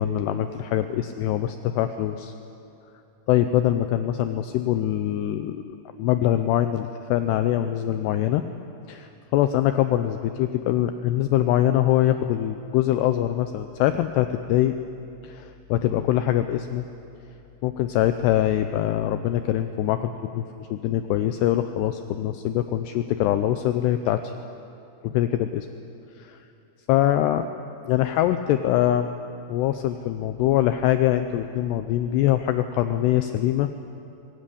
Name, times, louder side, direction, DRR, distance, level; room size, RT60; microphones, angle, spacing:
voice 1, 0.0-2.3 3.3-8.4 8.9-14.8 15.2-16.9 17.6-24.3 25.0-25.7 26.2-26.4 26.9-27.5 27.8-29.1 29.5-33.7, left 12 dB, 85° left, 9 dB, 2.4 m, -23 dB
23.0 x 16.5 x 10.0 m, 2.7 s
omnidirectional pair, 5.5 m